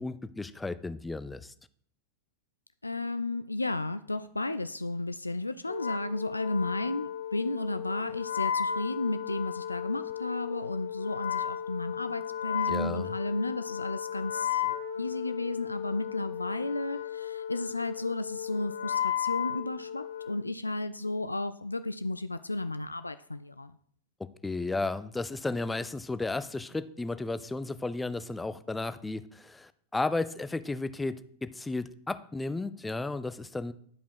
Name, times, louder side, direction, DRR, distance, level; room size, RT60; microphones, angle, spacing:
voice 1, 0.0-1.5 12.7-13.1 24.4-33.7, left 3 dB, 10° left, 14 dB, 0.5 m, -34 dB
voice 2, 2.8-23.7, left 2 dB, 85° left, 12 dB, 0.3 m, -33 dB
Wind instrument woodwind instrument, 5.7-20.4, left 9 dB, 65° left, 0.7 m, -34 dB
11.0 x 5.1 x 4.7 m, 0.62 s
figure-of-eight pair, 90°, 0 cm